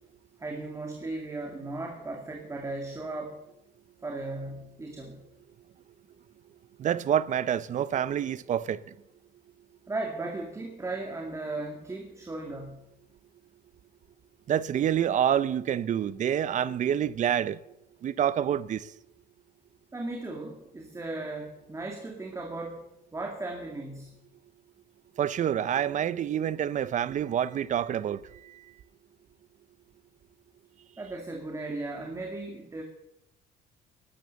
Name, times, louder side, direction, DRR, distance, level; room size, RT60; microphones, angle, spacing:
voice 1, 0.4-3.4 4.0-5.2 9.9-12.9 19.9-24.2 31.0-32.8, right 2 dB, 20° right, 2.3 m, -36 dB
voice 2, 6.8-8.8 14.5-17.6 18.0-18.8 25.2-28.2, right 9 dB, 45° right, 0.6 m, -27 dB
14.0 x 12.0 x 6.9 m
cardioid pair, 110°, 17 cm